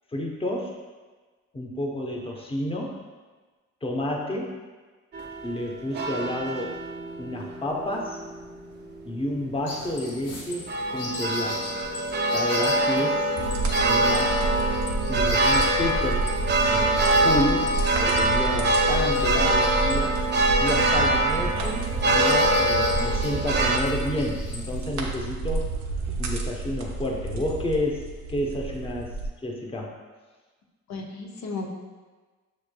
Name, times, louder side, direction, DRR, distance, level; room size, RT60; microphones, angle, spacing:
voice 1, 0.1-0.8 1.5-3.0 3.8-4.5 5.4-6.7 7.2-8.2 9.0-11.6 12.2-13.3 13.8-14.4 15.1-16.3 16.7-20.2 20.6-25.7 26.2-29.1 29.4-29.9, left 1 dB, 20° left, 0 dB, 0.8 m, -30 dB
sound 1, 5.1-23.8, right 1 dB, 35° right, 0.6 m, -25 dB
sound 2, 9.7-24.9, left 1 dB, 90° left, 1.0 m, -38 dB
sound 3, 13.4-29.3, right 3 dB, 70° right, 0.7 m, -30 dB
voice 2, 30.9-31.7, left 3 dB, 65° left, 1 dB, 0.7 m, -35 dB
6.2 x 3.2 x 2.2 m, 1.4 s
cardioid pair, 90°, 30 cm